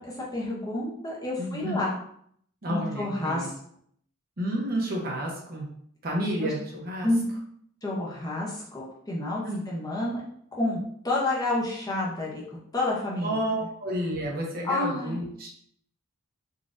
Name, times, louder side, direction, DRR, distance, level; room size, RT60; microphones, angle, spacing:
voice 1, 0.0-2.0 2.7-3.5 6.4-6.5 7.0-7.3 7.8-10.2 10.6-10.8 11.0-12.4 12.7-13.4 14.6-15.2, left 2 dB, 15° left, -4 dB, 0.6 m, -29 dB
voice 2, 1.4-1.8 2.6-3.5 4.4-5.7 6.0-7.1 9.4-9.6 13.2-15.5, right 1 dB, 45° right, -2 dB, 0.7 m, -30 dB
3.9 x 2.4 x 2.5 m, 0.65 s
head